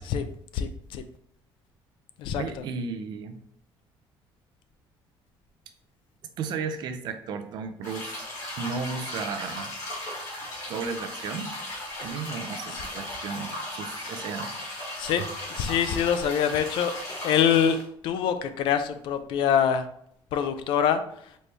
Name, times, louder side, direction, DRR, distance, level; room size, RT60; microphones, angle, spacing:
voice 1, 0.5-1.0 2.2-2.4 12.7-12.8 15.0-15.2 15.5-16.9 17.2-17.8 18.0-19.8 20.3-21.0, left 8 dB, 60° left, 10 dB, 0.4 m, -24 dB
voice 2, 2.3-3.4 6.4-8.3 8.6-9.7 10.7-11.5 12.0-14.6 15.2-15.3, right 5 dB, 50° right, 8 dB, 0.4 m, -34 dB
sound 1, 7.8-17.8, left 1 dB, 35° left, 1.4 m, -36 dB
4.1 x 3.2 x 3.3 m, 0.69 s
cardioid pair, 175°, 9 cm